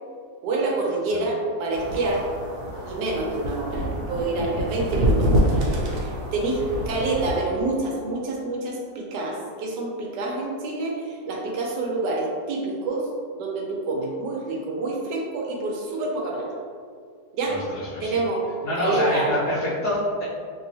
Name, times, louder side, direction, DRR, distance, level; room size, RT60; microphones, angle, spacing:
voice 1, 0.4-2.3 2.8-13.1 13.3-16.5 17.3-17.6 18.0-18.4 18.8-19.3, right 2 dB, 85° right, -2 dB, 1.3 m, -27 dB
sound 1, 1.7-7.4, equal, 70° right, 1.1 m, -26 dB
voice 2, 17.5-18.2 18.6-20.2, left 1 dB, 70° left, -10 dB, 1.2 m, -26 dB
3.2 x 2.8 x 2.7 m, 2.1 s
omnidirectional pair, 1.8 m